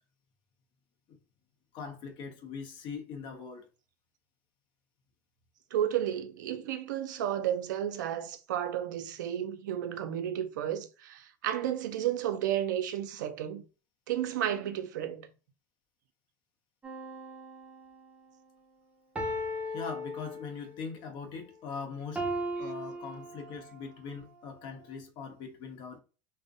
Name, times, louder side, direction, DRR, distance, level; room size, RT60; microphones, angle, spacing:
voice 1, 1.7-3.7 19.7-22.3 22.6-26.0, left 5 dB, 55° left, 0.6 m, -41 dB
voice 2, 5.7-13.6 14.1-15.3, right 10 dB, 85° right, 0.3 m, -32 dB
sound 1, 16.8-18.2 19.2-20.8 22.2-23.9 24.5-24.6, equal, 10° right, 0.5 m, -37 dB
2.5 x 2.0 x 2.5 m
hypercardioid pair, 95°, 10 cm